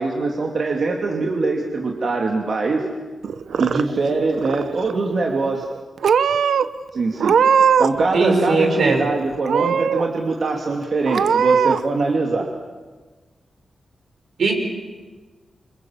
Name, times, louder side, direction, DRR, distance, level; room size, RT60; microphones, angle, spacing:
voice 1, 0.0-2.9 3.6-5.6 6.9-7.4 7.8-12.5, right 3 dB, 50° right, 1 dB, 2.8 m, -22 dB
Purr / Meow, 3.2-4.1 4.4-5.0 5.6-5.8 6.0-6.6 7.2-8.0 8.3-9.0 9.4-10.0 10.5-10.6 11.1-11.8, right 7 dB, 85° right, 0.9 m, -19 dB
voice 2, 8.1-9.1 14.4-14.5, right 3 dB, 70° right, 3 dB, 6.2 m, -19 dB
29.0 x 26.0 x 7.4 m, 1.3 s
wide cardioid pair, 135°, 0 cm